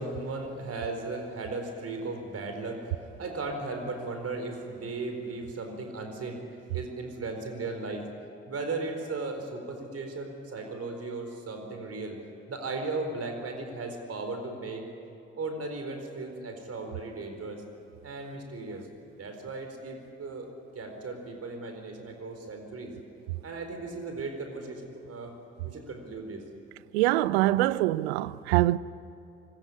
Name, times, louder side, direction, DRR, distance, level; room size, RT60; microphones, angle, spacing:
voice 1, 0.0-2.9 3.2-6.4 6.7-8.1 8.5-12.2 12.5-14.9 15.4-17.6 18.0-18.9 19.2-20.5 20.7-22.9 23.4-25.3 25.6-26.4, right 3 dB, 50° right, 4.4 m, -36 dB
voice 2, 26.9-28.8, right 17 dB, 80° right, 0.6 m, -24 dB
25.5 x 19.5 x 10.0 m
hypercardioid pair, 40°, 31 cm